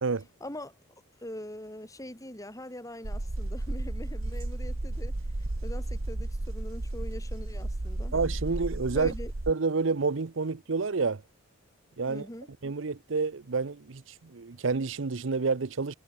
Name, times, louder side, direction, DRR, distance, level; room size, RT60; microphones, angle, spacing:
voice 1, 0.4-0.8 1.2-5.2 5.6-8.2 8.9-9.3 12.1-12.5, left 1 dB, 15° left, 5.6 m, -42 dB
sound 1, 3.0-9.5, right 1 dB, 90° right, 1.5 m, -33 dB
voice 2, 8.1-9.1 9.5-11.2 12.0-12.3 12.6-15.9, right 4 dB, 70° right, 0.7 m, -29 dB
head